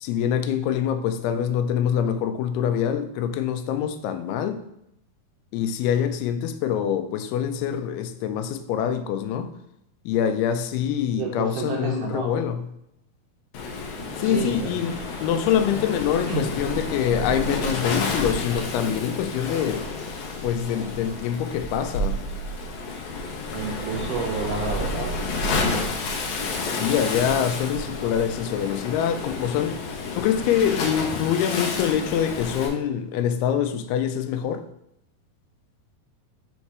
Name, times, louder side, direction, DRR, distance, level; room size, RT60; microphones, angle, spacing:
voice 1, 0.0-4.6 5.5-9.5 10.1-12.6 14.2-19.9 20.4-22.2 26.7-29.8 30.1-34.7, left 9 dB, 90° left, 2.6 m, -25 dB
voice 2, 11.2-12.3 14.0-14.7 16.3-16.5 23.5-25.1, right 5 dB, 80° right, 1.9 m, -30 dB
Waves surf, 13.5-32.7, left 3 dB, 70° left, 1.9 m, -30 dB
5.7 x 4.2 x 4.6 m
omnidirectional pair, 4.4 m